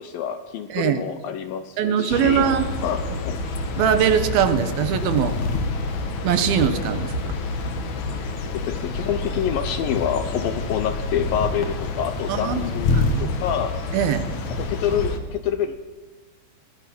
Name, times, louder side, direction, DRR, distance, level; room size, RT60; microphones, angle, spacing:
voice 1, 0.0-2.5 2.8-3.4 8.5-13.7 14.6-15.8, left 8 dB, 75° left, 10 dB, 2.2 m, -27 dB
voice 2, 0.7-1.0 1.8-2.7 3.8-5.4 6.2-7.4 12.3-12.6 12.9-13.3 13.9-14.3, right 9 dB, 70° right, 10 dB, 2.8 m, -21 dB
sound 1, 2.1-15.2, left 3 dB, 50° left, 2.6 m, -27 dB
23.0 x 19.0 x 6.0 m, 1.2 s
omnidirectional pair, 4.9 m